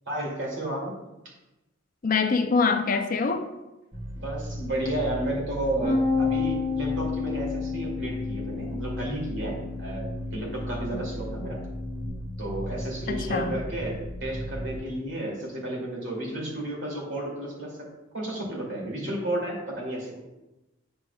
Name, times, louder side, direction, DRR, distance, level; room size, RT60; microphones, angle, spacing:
voice 1, 0.1-0.9 4.1-11.6 12.4-20.2, right 1 dB, 65° right, 2.6 m, -32 dB
voice 2, 2.0-3.5 8.6-8.7 13.1-13.6, left 4 dB, 40° left, 0.4 m, -25 dB
sound 1, 3.9-14.8, equal, 15° right, 0.9 m, -36 dB
Bass guitar, 5.8-12.1, left 5 dB, 35° right, 2.1 m, -31 dB
9.2 x 6.3 x 2.3 m
head